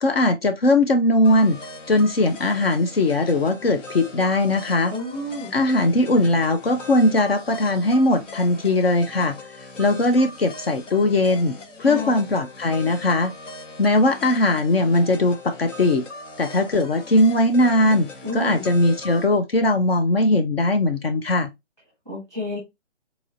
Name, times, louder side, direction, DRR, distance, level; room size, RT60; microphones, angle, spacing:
voice 1, 0.0-1.6 1.9-4.9 5.5-9.4 9.8-13.3 13.8-16.0 16.4-21.5, left 2 dB, 55° left, 0.6 m, -20 dB
sound 1, 1.2-19.3, left 3 dB, 75° left, 1.3 m, -40 dB
voice 2, 4.9-5.5 11.8-12.3 18.2-18.7 22.1-22.6, left 1 dB, 5° left, 0.9 m, -30 dB
4.0 x 3.0 x 2.4 m
hypercardioid pair, 170°, 37 cm